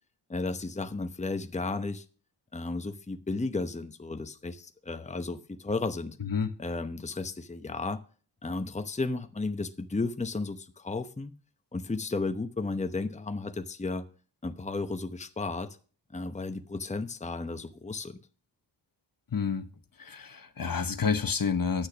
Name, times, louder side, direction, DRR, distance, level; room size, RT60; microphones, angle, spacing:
voice 1, 0.3-2.0 2.5-6.2 6.6-8.0 8.4-11.3 11.7-14.1 14.4-15.8 16.1-18.2, left 3 dB, 15° left, 0.9 m, -33 dB
voice 2, 19.3-19.6 20.0-21.9, left 6 dB, 50° left, 1.1 m, -29 dB
10.0 x 6.3 x 6.2 m
cardioid pair, 55°, 43 cm